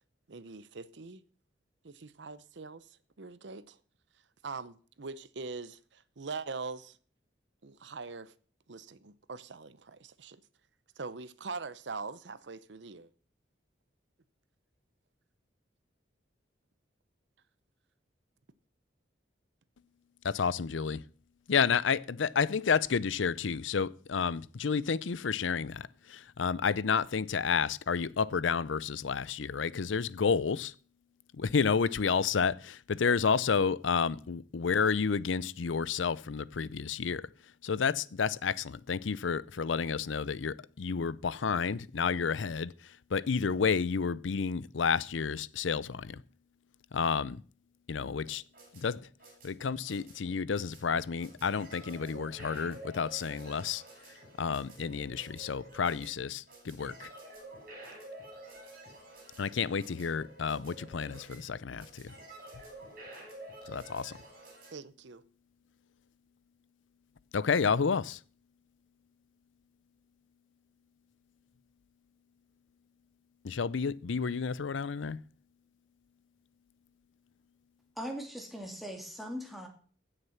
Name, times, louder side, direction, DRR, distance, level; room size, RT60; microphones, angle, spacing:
voice 1, 0.3-1.2 1.8-3.8 4.4-7.0 7.6-8.3 8.7-10.4 11.0-13.1 64.7-65.2, right 4 dB, 70° right, 0.8 m, -42 dB
voice 2, 20.2-21.0 21.5-30.7 31.3-37.3 37.6-46.2 46.9-47.4 47.9-48.4 48.7-49.0 49.4-53.8 54.4-57.1 59.4-62.1 63.7-64.1 67.3-68.2 73.4-75.2, left 6 dB, 85° left, 0.5 m, -30 dB
sound 1, 48.3-64.7, right 1 dB, 45° right, 7.9 m, -50 dB
voice 3, 78.0-79.7, equal, ahead, 2.3 m, -40 dB
16.5 x 6.7 x 5.9 m
head